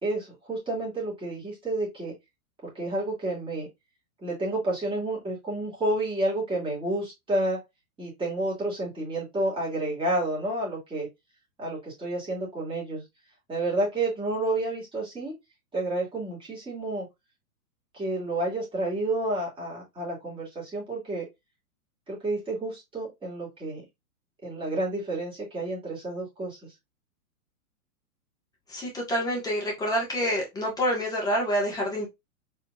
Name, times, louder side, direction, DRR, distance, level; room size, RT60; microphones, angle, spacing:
voice 1, 0.0-2.1 2.6-3.7 4.2-7.6 8.0-11.1 11.6-13.0 13.5-15.3 15.7-17.1 17.9-21.3 22.1-23.8 24.4-26.6, right 2 dB, 10° right, 2.5 m, -30 dB
voice 2, 28.7-32.1, equal, 10° left, 1.6 m, -27 dB
4.7 x 3.5 x 2.5 m
hypercardioid pair, 135°, 45 cm